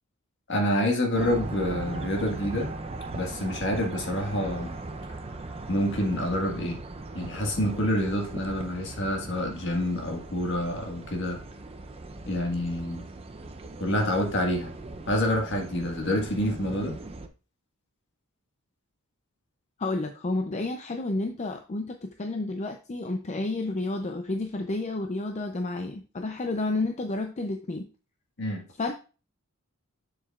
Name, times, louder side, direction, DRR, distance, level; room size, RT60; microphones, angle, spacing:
voice 1, 0.5-2.7 3.1-4.7 5.7-6.8 7.1-11.4 12.3-13.0 13.8-14.7 15.1-17.0 28.4-28.6, left 1 dB, 55° left, 1 dB, 1.6 m, -27 dB
sound 1, 1.1-17.3, right 2 dB, 25° right, 0.5 m, -39 dB
voice 2, 19.8-27.9 28.8-28.9, left 2 dB, 30° left, 5 dB, 0.5 m, -30 dB
7.0 x 6.8 x 2.4 m, 0.34 s
head